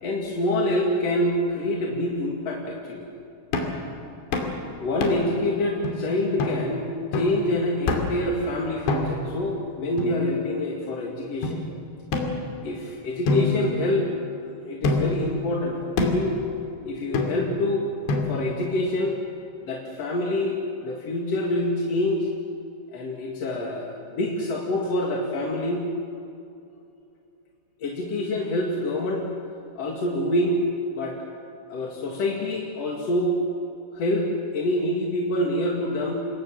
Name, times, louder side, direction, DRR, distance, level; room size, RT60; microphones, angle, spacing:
voice 1, 0.0-3.1 4.4-6.9 7.1-11.6 12.6-14.1 14.4-16.4 16.8-17.9 18.2-19.2 19.7-22.3 22.9-25.9 27.8-29.3 29.8-30.6 30.9-31.2 31.7-33.4 33.9-36.1, left 1 dB, 45° left, 0 dB, 2.3 m, -26 dB
sound 1, 3.5-3.8 4.3-4.6 5.0-5.4 5.8-5.9 6.4-6.6 7.1-7.4 7.9-8.2 8.9-9.3 10.0-10.7 11.4-11.5 12.1-12.8 13.3-14.3 14.8-15.3 16.0-16.3 17.1-17.6 18.1-18.6, left 3 dB, 70° left, 4.7 m, -26 dB
26.5 x 20.5 x 7.6 m, 2.7 s
omnidirectional pair, 5.4 m